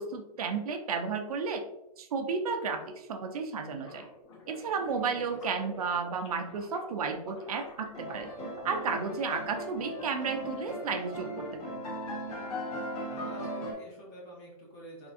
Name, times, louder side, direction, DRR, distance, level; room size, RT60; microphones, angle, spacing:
voice 1, 0.0-1.6 2.0-4.1 4.5-8.3 8.6-11.8, right 5 dB, 65° right, 5 dB, 0.6 m, -33 dB
sound 1, 3.8-9.7, left 1 dB, 45° left, 0.8 m, -49 dB
voice 2, 5.1-5.6 13.1-15.1, right 1 dB, 15° left, -2 dB, 0.6 m, -49 dB
sound 2, 7.9-13.7, equal, 70° left, 1.2 m, -38 dB
3.6 x 2.5 x 2.5 m, 0.87 s
hypercardioid pair, 165°, 20 cm